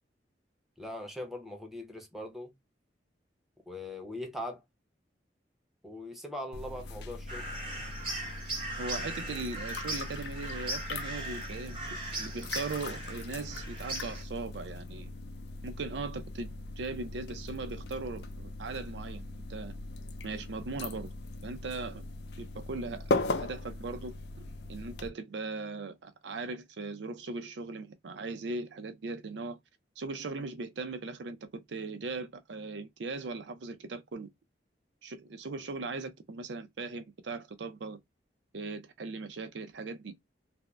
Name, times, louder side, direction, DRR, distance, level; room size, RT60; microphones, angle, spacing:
voice 1, 0.8-2.5 3.7-4.6 5.8-7.4, left 1 dB, ahead, 0.8 m, -40 dB
sound 1, 6.5-25.1, left 2 dB, 65° left, 0.4 m, -39 dB
sound 2, 7.3-14.2, right 2 dB, 30° right, 1.1 m, -39 dB
voice 2, 8.8-15.1 15.6-19.2 19.5-19.7 20.2-21.1 21.4-22.0 22.4-29.6 30.0-34.3 35.0-38.0 38.5-40.1, right 3 dB, 90° right, 0.5 m, -39 dB
2.5 x 2.1 x 3.2 m
head